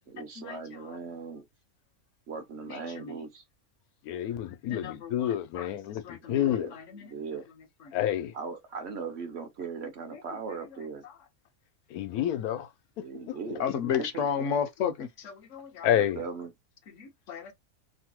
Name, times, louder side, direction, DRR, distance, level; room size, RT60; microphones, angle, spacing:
voice 1, 0.1-1.4 2.3-3.4 6.2-6.7 7.0-7.4 8.3-11.0 13.0-13.7 14.0-14.5 15.9-16.5, right 5 dB, 55° right, 0.8 m, -39 dB
voice 2, 4.0-6.7 7.9-8.3 11.9-12.7 15.8-16.2, left 11 dB, 90° left, 1.1 m, -28 dB
voice 3, 4.7-5.7 6.0-6.4 6.9-7.0 13.6-15.9 17.0-17.5, left 7 dB, 65° left, 0.9 m, -32 dB
2.9 x 2.1 x 3.0 m
omnidirectional pair, 1.5 m